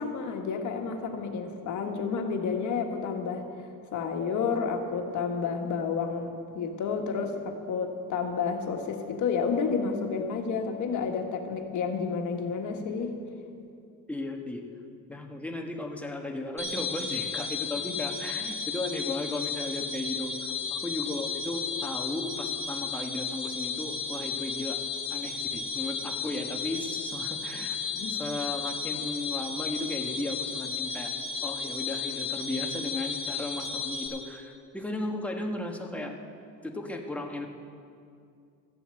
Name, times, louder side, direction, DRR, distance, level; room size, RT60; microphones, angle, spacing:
voice 1, 0.0-3.4 3.9-13.2 27.9-28.1, left 5 dB, 60° left, 4 dB, 1.6 m, -30 dB
voice 2, 14.1-14.6 15.1-24.8 25.1-27.8 28.1-31.1 31.4-36.2 36.6-37.5, left 2 dB, 5° left, 2 dB, 1.3 m, -35 dB
sound 1, 16.6-34.1, left 5 dB, 20° right, 3.2 m, -34 dB
14.5 x 7.0 x 8.9 m, 2.4 s
cardioid pair, 125°, 34 cm